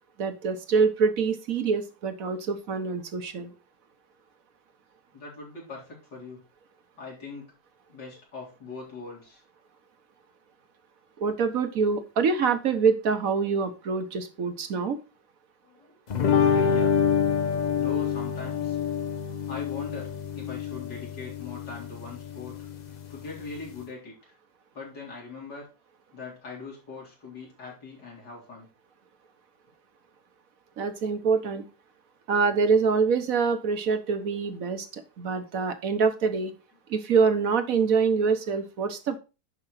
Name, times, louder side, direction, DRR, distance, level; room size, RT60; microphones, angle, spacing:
voice 1, 0.2-3.5 11.2-15.0 30.8-31.6 32.3-36.5 36.9-39.2, right 5 dB, 60° right, 9 dB, 1.4 m, -25 dB
voice 2, 5.1-6.4 7.0-7.5 7.9-9.4 15.6-16.0 16.3-16.9 17.7-18.8 19.5-22.7 23.1-24.3 24.7-25.6 26.1-28.7, left 3 dB, 90° left, -3 dB, 4.4 m, -41 dB
sound 1, 16.1-23.8, left 7 dB, 65° left, 0.4 m, -27 dB
11.0 x 5.1 x 4.1 m, 0.31 s
omnidirectional pair, 1.8 m